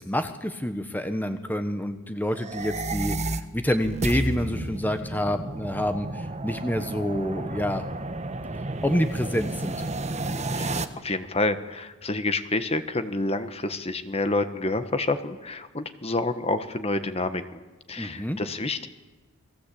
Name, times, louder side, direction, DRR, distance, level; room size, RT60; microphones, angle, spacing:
voice 1, 0.0-7.8 8.8-9.8 18.0-18.4, left 1 dB, 10° left, 8 dB, 1.2 m, -28 dB
sound 1, 2.3-10.8, right 2 dB, 30° right, 1.3 m, -32 dB
voice 2, 10.5-17.4 17.9-18.9, left 2 dB, 30° left, 9 dB, 1.3 m, -28 dB
29.5 x 21.0 x 8.6 m, 1.2 s
head